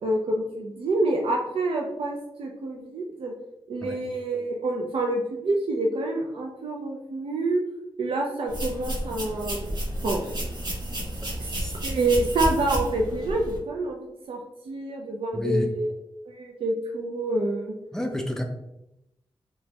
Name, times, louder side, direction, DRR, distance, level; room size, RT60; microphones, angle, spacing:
voice 1, 0.0-3.3 3.7-7.6 8.0-9.6 10.0-10.3 11.4-11.5 11.8-14.4 14.7-15.9 16.3-17.7, right 2 dB, 75° right, 0 dB, 0.4 m, -27 dB
sound 1, 8.5-13.6, right 1 dB, 50° right, 0.8 m, -31 dB
voice 2, 15.3-15.7 17.9-18.4, equal, 5° left, 3 dB, 0.4 m, -29 dB
3.1 x 2.2 x 2.7 m, 0.87 s
wide cardioid pair, 125°, 10 cm